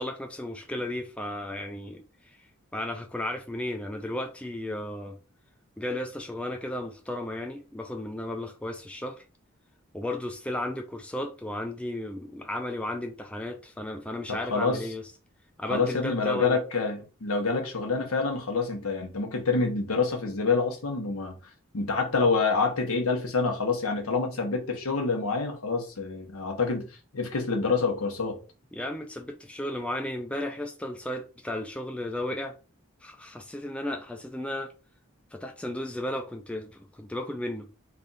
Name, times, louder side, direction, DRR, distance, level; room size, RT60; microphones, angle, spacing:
voice 1, 0.0-2.4 2.7-5.1 5.8-9.2 9.9-15.0 15.6-16.6 28.7-32.6 33.0-34.7 35.3-37.7, left 1 dB, 5° left, 0.3 m, -34 dB
voice 2, 14.3-14.8 15.7-21.4 21.7-26.8 27.1-28.4, left 4 dB, 85° left, 1.0 m, -27 dB
3.3 x 2.3 x 4.0 m
head